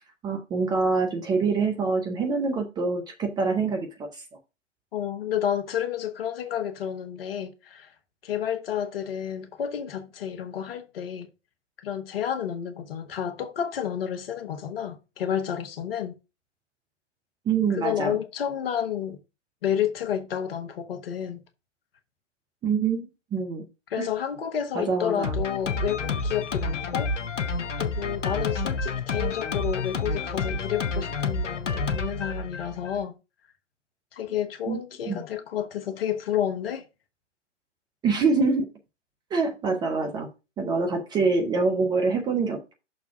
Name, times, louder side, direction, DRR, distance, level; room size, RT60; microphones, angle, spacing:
voice 1, 0.2-4.2 17.5-18.2 22.6-23.7 23.9-24.1 24.7-25.4 34.7-34.8 35.0-35.2 38.0-38.7 39.3-40.3 40.6-42.7, right 4 dB, 10° right, 0.7 m, -25 dB
voice 2, 4.9-7.9 8.2-11.3 11.8-16.2 17.7-19.2 19.6-21.4 23.9-27.1 27.8-33.1 34.1-36.8, left 9 dB, 50° left, 1.2 m, -30 dB
Drum kit, 25.2-33.0, left 3 dB, 80° left, 0.9 m, -29 dB
6.4 x 3.5 x 5.9 m
figure-of-eight pair, 120°, 36 cm